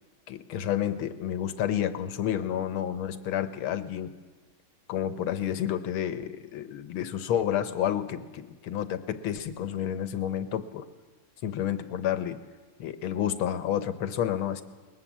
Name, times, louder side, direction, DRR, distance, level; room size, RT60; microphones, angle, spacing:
voice 1, 0.3-4.1 4.9-10.9 11.4-12.4 12.8-14.6, left 10 dB, 75° left, 11 dB, 1.9 m, -30 dB
21.5 x 20.0 x 7.5 m, 1.3 s
omnidirectional pair, 2.3 m